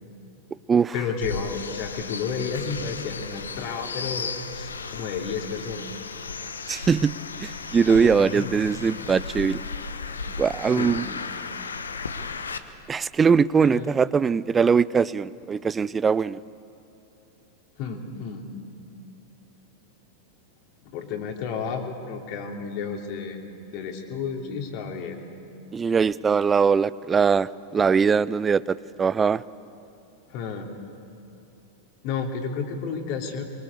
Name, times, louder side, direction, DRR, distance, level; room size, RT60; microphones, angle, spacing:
voice 1, 0.9-5.8 7.9-8.5 10.7-11.0 13.6-13.9 17.8-18.5 20.8-23.4 23.7-25.2 30.3-30.7 32.0-33.4, left 5 dB, 45° left, 3 dB, 3.0 m, -32 dB
sound 1, 1.2-12.6, left 4 dB, 70° left, 1.2 m, -35 dB
voice 2, 6.7-9.6 10.4-11.1 12.9-16.4 25.7-29.4, right 6 dB, 20° right, 20 dB, 0.5 m, -21 dB
24.0 x 23.0 x 8.4 m, 2.8 s
figure-of-eight pair, 90°, 0 cm